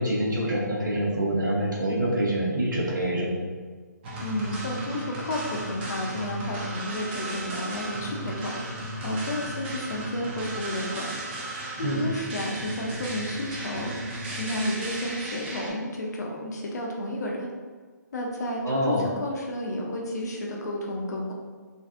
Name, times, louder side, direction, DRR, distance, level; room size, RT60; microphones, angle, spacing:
voice 1, 0.0-3.4 11.8-12.1 18.6-19.1, right 1 dB, 85° right, -4 dB, 0.9 m, -26 dB
sound 1, 4.0-15.7, right 1 dB, 35° right, 0.5 m, -35 dB
voice 2, 4.2-11.1 11.4-17.5 18.1-21.3, left 1 dB, 60° left, -1 dB, 0.6 m, -32 dB
2.5 x 2.4 x 2.4 m, 1.5 s
figure-of-eight pair, 140°, 10 cm